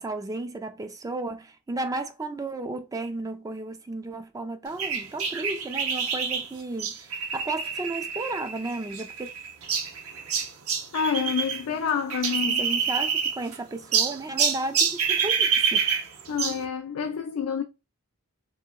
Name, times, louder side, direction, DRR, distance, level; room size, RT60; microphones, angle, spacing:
voice 1, 0.0-9.3 12.4-15.3 15.7-15.8, right 2 dB, 15° right, 0.3 m, -33 dB
sound 1, 4.8-11.6 11.9-13.5 13.9-16.6, right 6 dB, 70° right, 0.7 m, -27 dB
voice 2, 10.9-12.6 16.3-17.6, left 7 dB, 75° left, 0.4 m, -28 dB
2.9 x 2.8 x 3.6 m
head